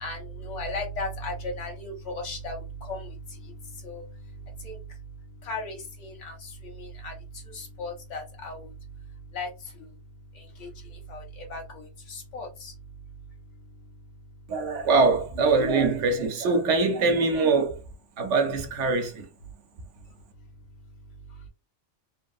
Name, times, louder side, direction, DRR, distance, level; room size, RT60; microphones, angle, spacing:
voice 1, 0.0-2.6 2.9-3.0 3.8-4.0 4.6-4.8 5.5-6.3 6.8-7.1 7.5-8.6 9.3-9.5 10.6-10.7 11.1-11.2 11.5-12.7, left 2 dB, 85° left, 1.3 m, -35 dB
voice 2, 14.5-17.8 18.2-19.3, right 3 dB, 80° right, 1.1 m, -23 dB
3.3 x 2.7 x 2.3 m
omnidirectional pair, 1.2 m